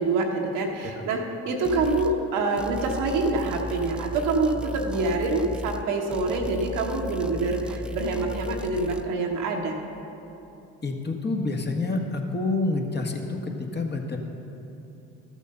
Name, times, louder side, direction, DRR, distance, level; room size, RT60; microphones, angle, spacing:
voice 1, 0.0-9.8, right 3 dB, 80° right, 1 dB, 1.2 m, -26 dB
sound 1, 1.6-2.2 2.6-5.9 6.1-9.0, left 2 dB, 5° right, 0.5 m, -36 dB
voice 2, 10.8-14.2, left 3 dB, 30° left, 2 dB, 1.6 m, -28 dB
13.0 x 7.2 x 5.4 m, 2.9 s
supercardioid pair, 60°, 32 cm